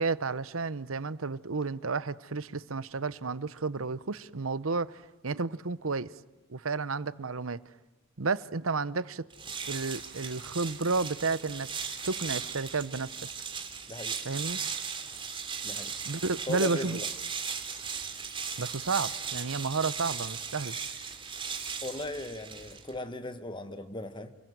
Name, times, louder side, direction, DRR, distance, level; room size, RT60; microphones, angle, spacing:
voice 1, 0.0-6.1 6.5-7.6 8.2-9.2 9.7-11.7 12.0-13.1 14.2-14.6 16.0-17.0 18.6-20.8, right 4 dB, 85° right, 0.9 m, -31 dB
sound 1, 9.3-23.0, right 6 dB, 25° right, 2.8 m, -37 dB
voice 2, 13.9-14.2 15.6-16.0 16.5-17.1 21.8-24.3, left 2 dB, 25° left, 1.4 m, -37 dB
29.0 x 22.0 x 9.4 m
head